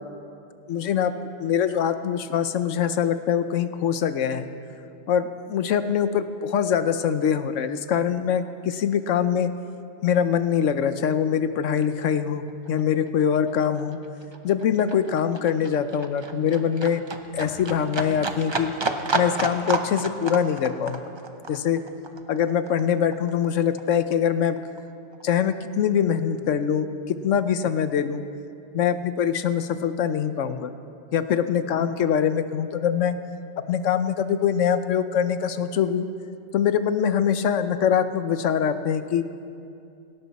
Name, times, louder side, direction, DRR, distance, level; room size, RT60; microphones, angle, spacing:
voice 1, 0.7-1.1 1.4-4.5 5.1-9.5 10.0-14.0 14.4-17.0 17.3-18.7 19.1-21.0 21.5-21.8 22.3-24.6 25.2-28.2 28.7-30.7 31.1-33.1 33.7-36.1 36.5-39.2, left 8 dB, 80° left, 11 dB, 1.1 m, -23 dB
Livestock farm animals working animals, 12.1-12.2 12.5-23.5 23.8-24.8 25.1-25.2, right 3 dB, 25° right, 0.7 m, -31 dB
19.0 x 17.0 x 4.2 m, 2.6 s
omnidirectional pair, 1.3 m